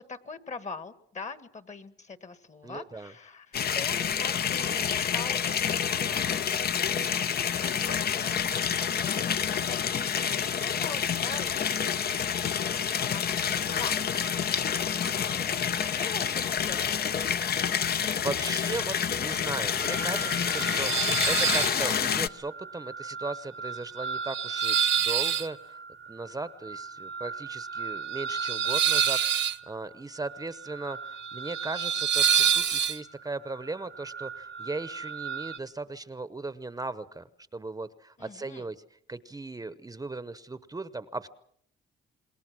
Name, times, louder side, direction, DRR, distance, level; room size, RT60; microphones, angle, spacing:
voice 1, 0.0-7.9 8.2-14.1 14.5-17.1 38.2-38.7, left 4 dB, 35° left, 12 dB, 1.7 m, -43 dB
voice 2, 2.6-3.1 14.9-15.5 18.2-25.8 26.1-38.8 39.1-41.3, right 3 dB, 20° right, 14 dB, 0.9 m, -37 dB
sound 1, 3.5-22.3, left 8 dB, 55° left, 0.9 m, -28 dB
sound 2, 19.4-35.6, right 8 dB, 65° right, 0.9 m, -30 dB
27.5 x 21.0 x 6.1 m, 0.66 s
cardioid pair, 90°, 20 cm